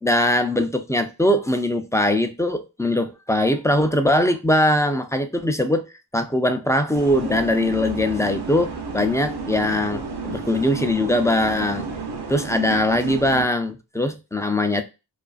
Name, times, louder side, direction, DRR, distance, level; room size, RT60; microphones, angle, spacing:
voice 1, 0.0-5.9 6.1-11.9 12.3-14.8, left 1 dB, 10° left, 0.3 m, -21 dB
sound 1, 6.9-13.5, right 4 dB, 65° right, 0.6 m, -32 dB
2.4 x 2.4 x 2.3 m
cardioid pair, 45°, 42 cm